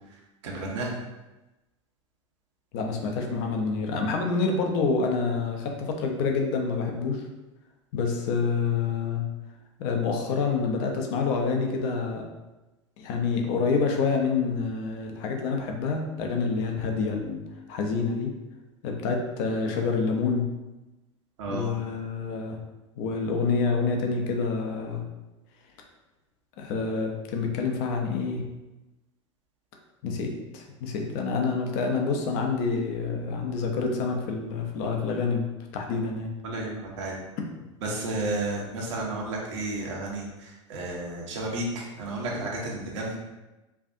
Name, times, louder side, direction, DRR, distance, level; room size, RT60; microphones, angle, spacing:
voice 1, 0.4-0.9 21.4-21.7 36.4-37.1 37.8-43.1, right 2 dB, 65° right, -2 dB, 1.1 m, -32 dB
voice 2, 2.7-7.2 7.9-9.3 9.8-12.2 13.0-17.4 17.7-18.3 18.8-20.5 21.5-22.6 23.0-25.0 26.6-28.4 30.0-35.5 35.7-36.3, left 4 dB, 55° left, 2 dB, 0.7 m, -27 dB
4.6 x 2.6 x 2.6 m, 1.1 s
hypercardioid pair, 90°, 16 cm